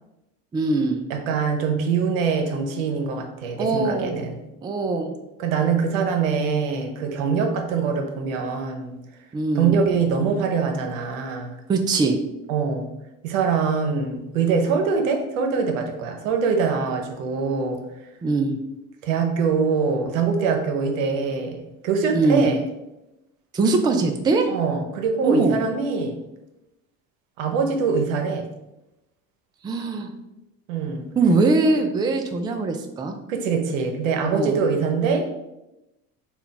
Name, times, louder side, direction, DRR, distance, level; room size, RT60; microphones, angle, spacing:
voice 1, 0.5-1.0 3.6-4.1 4.6-5.1 9.3-9.7 11.7-12.2 18.2-18.6 22.1-22.5 23.5-24.5 25.2-25.6 29.6-30.1 31.2-33.2 34.3-34.6, right 3 dB, 10° right, 5 dB, 0.3 m, -21 dB
voice 2, 1.1-4.4 5.4-9.0 9.5-11.6 12.5-12.9 13.2-17.8 19.0-22.6 24.5-26.2 27.4-28.4 30.7-31.1 33.3-35.3, right 5 dB, 85° right, 4 dB, 0.7 m, -23 dB
3.3 x 2.3 x 3.8 m, 0.93 s
hypercardioid pair, 75°, 39 cm